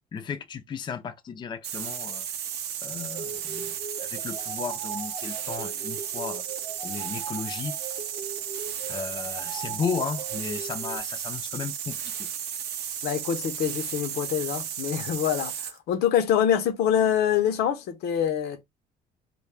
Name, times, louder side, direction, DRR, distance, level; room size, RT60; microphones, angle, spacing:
voice 1, 0.1-2.3 2.8-3.7 4.0-6.4 6.8-7.8 8.9-12.3, left 6 dB, 25° left, 0.4 m, -34 dB
sound 1, 1.6-15.8, right 9 dB, 75° right, 0.5 m, -34 dB
sound 2, 3.1-11.0, right 6 dB, 45° right, 0.7 m, -40 dB
voice 2, 13.0-18.6, left 9 dB, 75° left, 0.6 m, -25 dB
2.3 x 2.1 x 3.1 m
cardioid pair, 110°, 17 cm